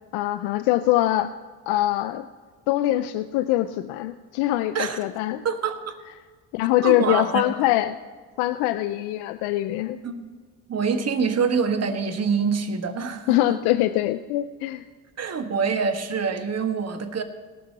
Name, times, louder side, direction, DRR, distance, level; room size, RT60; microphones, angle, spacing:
voice 1, 0.1-1.3 1.7-2.3 2.7-5.4 6.5-8.0 8.4-10.0 13.3-14.8, left 15 dB, 80° left, 12 dB, 0.6 m, -23 dB
voice 2, 5.4-6.0 6.8-7.4 10.0-10.3 10.7-13.6 15.2-17.2, right 5 dB, 40° right, 8 dB, 1.4 m, -25 dB
17.5 x 6.4 x 5.9 m, 1.4 s
supercardioid pair, 65°, 39 cm